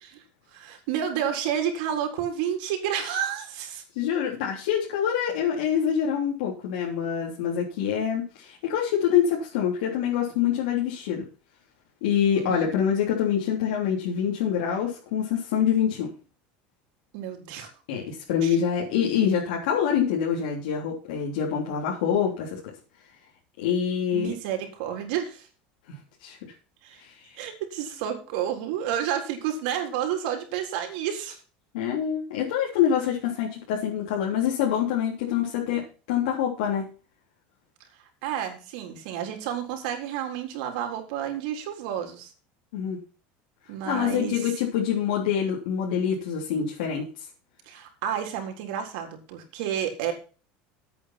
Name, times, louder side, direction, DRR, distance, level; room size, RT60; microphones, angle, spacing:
voice 1, 0.5-3.8 12.4-12.7 17.1-17.7 18.4-18.6 24.1-25.5 26.8-27.0 27.4-31.4 38.2-42.3 43.7-44.5 47.7-50.1, right 9 dB, 70° right, 3 dB, 3.8 m, -30 dB
voice 2, 4.0-11.3 12.0-16.1 17.9-22.6 23.6-24.3 25.9-26.5 27.0-27.2 31.7-35.8 36.1-36.9 42.7-43.0 43.8-47.0, left 8 dB, 85° left, -3 dB, 3.4 m, -25 dB
9.8 x 8.6 x 5.9 m, 0.35 s
cardioid pair, 160°, 5 cm